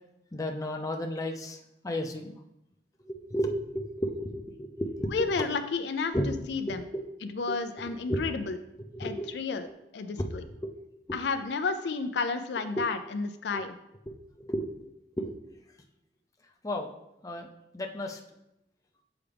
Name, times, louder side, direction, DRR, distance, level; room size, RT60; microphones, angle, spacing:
voice 1, 0.3-1.6 1.8-2.3 3.0-5.5 6.1-6.4 6.7-7.0 7.5-7.6 7.8-8.2 8.9-9.3 10.2-10.3 10.6-10.7 11.1-11.2 12.7-12.9 13.5-13.6 14.1-14.7 15.2-15.3 16.6-16.9 17.2-17.5 17.7-18.2, equal, 20° left, 2 dB, 0.6 m, -33 dB
voice 2, 5.1-6.1 6.5-6.8 7.2-8.6 9.0-9.7 9.9-10.4 11.1-13.7, left 4 dB, 70° left, 9 dB, 0.4 m, -31 dB
7.0 x 4.8 x 3.4 m, 0.84 s
head